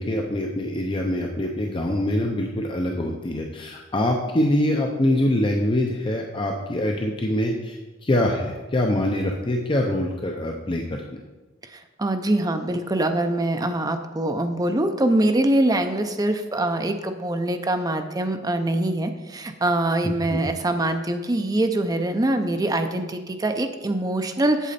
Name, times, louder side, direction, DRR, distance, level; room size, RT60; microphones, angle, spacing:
voice 1, 0.0-10.8 20.0-20.4, left 1 dB, 25° left, 1 dB, 0.6 m, -24 dB
voice 2, 11.7-24.7, right 1 dB, 20° right, 7 dB, 0.5 m, -24 dB
8.2 x 7.7 x 4.2 m, 1.2 s
head